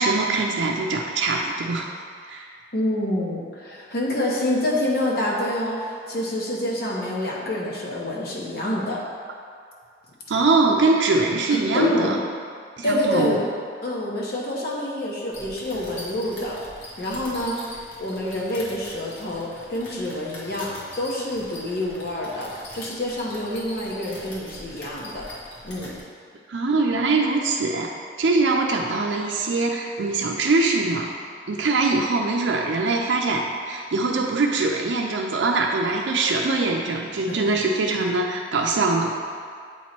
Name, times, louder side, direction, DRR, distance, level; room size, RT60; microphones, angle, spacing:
voice 1, 0.0-1.9 2.3-2.5 10.3-12.2 12.8-13.4 26.5-27.9 28.2-31.1 31.5-39.1, right 3 dB, 85° right, 0 dB, 0.5 m, -22 dB
voice 2, 2.7-9.0 11.5-12.1 12.8-13.4 13.8-16.6 17.0-17.6 18.0-25.3 25.6-25.9 37.3-37.4, left 1 dB, 55° left, -4 dB, 1.1 m, -27 dB
sound 1, 15.3-26.0, left 1 dB, 85° left, 1.4 m, -42 dB
8.0 x 3.0 x 4.3 m, 2.1 s
head